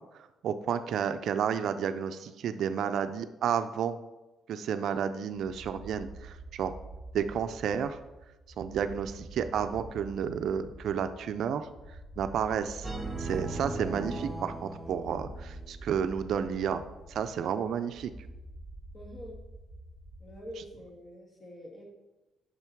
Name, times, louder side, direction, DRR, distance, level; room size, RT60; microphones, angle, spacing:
voice 1, 0.4-4.0 4.5-6.7 7.1-8.0 8.6-11.7 12.2-12.9 13.2-16.8 17.1-18.1, right 8 dB, 70° right, 10 dB, 0.4 m, -31 dB
sound 1, 5.3-20.9, right 2 dB, 15° left, 2.1 m, -47 dB
sound 2, 12.8-15.8, right 2 dB, 10° right, 0.9 m, -37 dB
voice 2, 18.9-19.4 20.2-21.8, equal, 35° left, 0 dB, 2.0 m, -45 dB
6.0 x 5.6 x 4.5 m, 1.1 s
cardioid pair, 90°, 0 cm